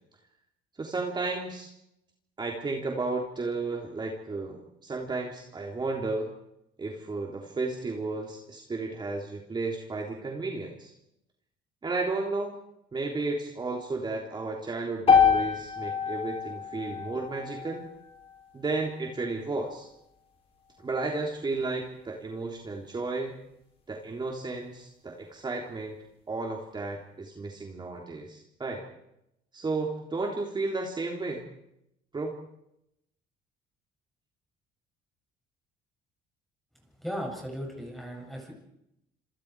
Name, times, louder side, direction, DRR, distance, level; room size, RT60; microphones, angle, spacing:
voice 1, 0.8-1.7 2.4-6.3 6.8-10.9 11.8-12.6 12.9-17.9 18.5-19.9 20.8-23.4 23.9-26.0 26.3-28.8 29.5-31.5 32.1-32.4, right 3 dB, 25° right, 1 dB, 3.5 m, -33 dB
sound 1, 15.1-19.2, left 6 dB, 35° left, 7.0 m, -26 dB
voice 2, 37.0-38.5, equal, ahead, 0 dB, 7.9 m, -36 dB
27.5 x 26.5 x 4.9 m, 0.83 s
cardioid pair, 110°, 17 cm